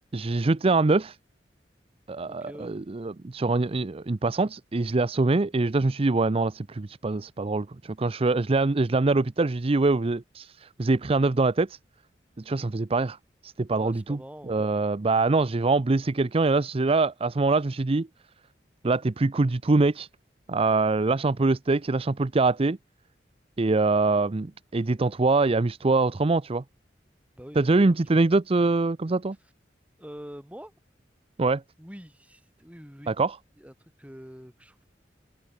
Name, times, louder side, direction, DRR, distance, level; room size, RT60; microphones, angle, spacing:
voice 1, 0.1-1.2 2.1-11.8 12.5-13.2 13.4-14.2 14.5-18.1 18.8-20.1 20.5-22.8 23.6-26.6 27.6-29.4 31.4-31.6 33.1-33.4, right 3 dB, 35° right, 0.6 m, -24 dB
voice 2, 2.3-2.7 13.8-14.7 27.3-28.2 30.0-30.7 31.8-33.2 33.6-34.9, equal, 10° right, 7.4 m, -45 dB
head